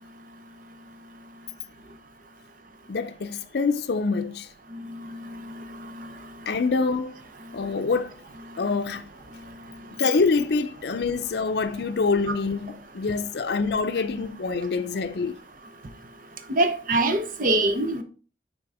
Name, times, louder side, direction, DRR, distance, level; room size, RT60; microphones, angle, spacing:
voice 1, 2.9-4.5 6.5-7.2 7.5-8.1 8.6-9.1 10.0-15.4, left 4 dB, 65° left, 0.5 m, -25 dB
voice 2, 4.9-5.6 6.0-6.1 16.5-18.0, right 2 dB, 50° right, 0.8 m, -25 dB
6.1 x 3.8 x 4.7 m
head